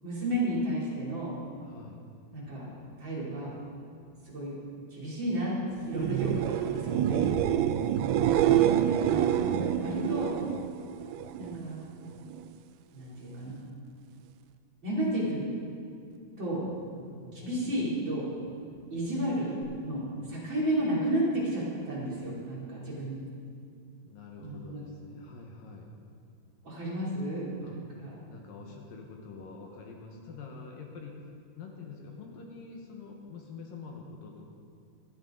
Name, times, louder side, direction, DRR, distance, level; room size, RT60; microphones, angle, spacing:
voice 1, 0.0-1.3 2.3-2.7 3.0-3.5 4.2-4.6 4.9-5.6 5.8-7.6 8.1-10.3 11.4-11.9 12.9-13.6 14.8-15.4 16.4-16.6 17.3-18.3 18.9-19.5 19.8-23.2 24.4-24.8 26.6-28.1, right 1 dB, 30° right, -7 dB, 3.4 m, -32 dB
voice 2, 1.6-2.0 8.0-8.6 16.9-17.5 24.0-25.9 27.6-27.8 28.3-31.2 31.5-34.5, left 4 dB, 70° left, 1 dB, 2.6 m, -46 dB
sound 1, 5.9-11.6 12.0-12.6 19.6-19.7, right 11 dB, 90° right, 2.7 m, -27 dB
25.0 x 8.8 x 3.8 m, 2.4 s
omnidirectional pair, 4.6 m